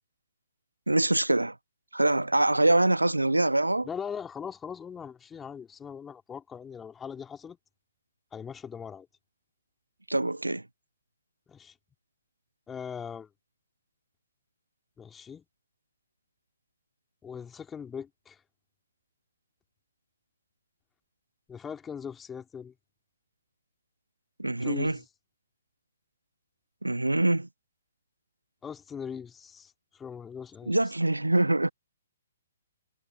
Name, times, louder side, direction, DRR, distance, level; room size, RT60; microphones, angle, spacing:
voice 1, 0.9-1.5 1.9-3.9 10.1-10.6 24.4-25.0 26.8-27.5 30.7-31.7, right 2 dB, 85° right, 1.2 m, -24 dB
voice 2, 3.8-7.6 8.3-9.1 11.5-11.7 12.7-13.3 15.0-15.4 17.2-18.4 21.5-22.7 24.6-25.0 28.6-30.7, left 7 dB, 10° left, 3.2 m, -40 dB
figure-of-eight pair, 125°, 0 cm